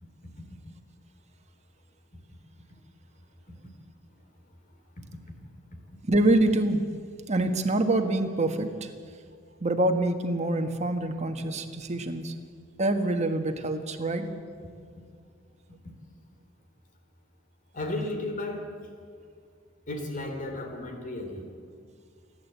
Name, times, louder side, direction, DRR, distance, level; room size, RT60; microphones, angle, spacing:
voice 1, 6.1-6.8 7.3-8.9 9.6-12.3 12.8-14.3, right 1 dB, 35° right, 6 dB, 1.6 m, -25 dB
voice 2, 17.7-18.7 19.9-21.5, left 2 dB, 40° left, 4 dB, 2.9 m, -34 dB
27.5 x 11.0 x 8.5 m, 2.2 s
head